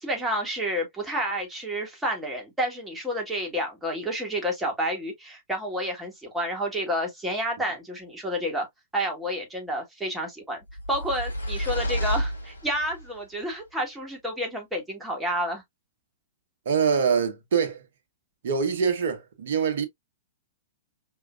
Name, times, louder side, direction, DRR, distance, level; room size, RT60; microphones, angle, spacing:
voice 1, 0.0-8.7 8.9-10.6 10.9-15.6, equal, 5° right, 1.7 m, -30 dB
sound 1, 10.7-13.1, equal, 80° left, 1.0 m, -30 dB
voice 2, 16.6-17.8 18.4-19.9, right 6 dB, 55° right, 1.0 m, -24 dB
4.8 x 2.8 x 2.4 m
figure-of-eight pair, 105°, 0 cm